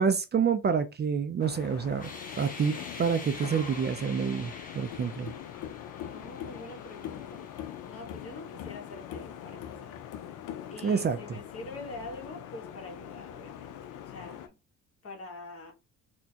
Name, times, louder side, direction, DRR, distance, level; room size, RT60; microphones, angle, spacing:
voice 1, 0.0-2.1 2.4-5.3 10.8-11.2, right 6 dB, 35° right, 0.4 m, -28 dB
sound 1, 1.4-14.5, left 10 dB, 85° left, 0.5 m, -42 dB
sound 2, 2.0-8.8, left 3 dB, 30° left, 1.0 m, -46 dB
voice 2, 6.0-7.5 7.9-10.0 10.7-14.6 15.0-15.7, left 2 dB, 50° left, 1.3 m, -45 dB
4.3 x 2.2 x 2.8 m
cardioid pair, 90°, 30 cm